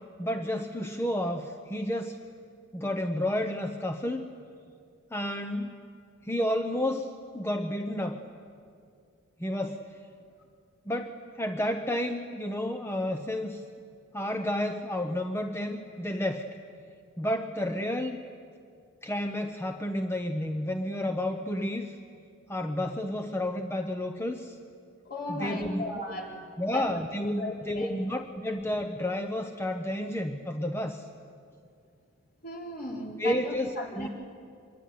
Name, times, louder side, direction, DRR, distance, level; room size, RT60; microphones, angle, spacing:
voice 1, 0.2-2.2 2.7-4.3 5.1-5.8 6.2-8.2 9.4-10.0 10.9-13.6 14.1-16.5 17.2-18.2 19.0-22.0 22.5-24.6 25.3-25.8 26.6-31.1 33.2-34.1, left 1 dB, 10° left, 5 dB, 0.9 m, -31 dB
voice 2, 25.0-26.3 26.7-27.0 27.4-27.9 32.4-34.1, left 1 dB, 45° left, -2 dB, 4.7 m, -36 dB
25.0 x 22.5 x 9.5 m, 2.3 s
head